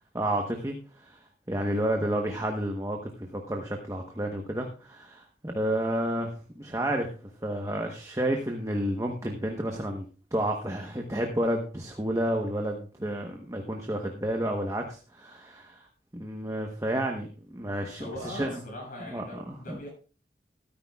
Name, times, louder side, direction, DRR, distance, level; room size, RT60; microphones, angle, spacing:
voice 1, 0.1-1.2 1.5-6.3 6.6-7.1 7.4-10.0 10.3-15.8 16.1-17.3 17.5-18.6 19.1-19.8, right 1 dB, 15° right, 2 dB, 1.0 m, -30 dB
voice 2, 18.0-19.9, left 1 dB, 45° left, -1 dB, 7.6 m, -40 dB
13.5 x 13.5 x 2.4 m, 0.37 s
head